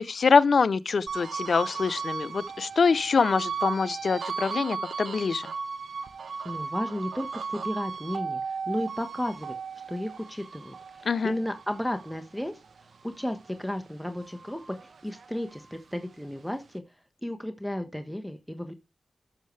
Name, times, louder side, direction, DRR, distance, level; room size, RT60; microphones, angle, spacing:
voice 1, 0.0-5.4 11.1-11.3, left 5 dB, 70° left, 0.5 m, -24 dB
sound 1, 1.1-13.7 14.1-15.8, right 5 dB, 80° right, 0.9 m, -36 dB
voice 2, 6.4-9.5 9.9-12.6 13.0-16.8 17.2-18.7, left 1 dB, 5° left, 1.2 m, -33 dB
12.0 x 6.6 x 3.2 m
cardioid pair, 50°, 0 cm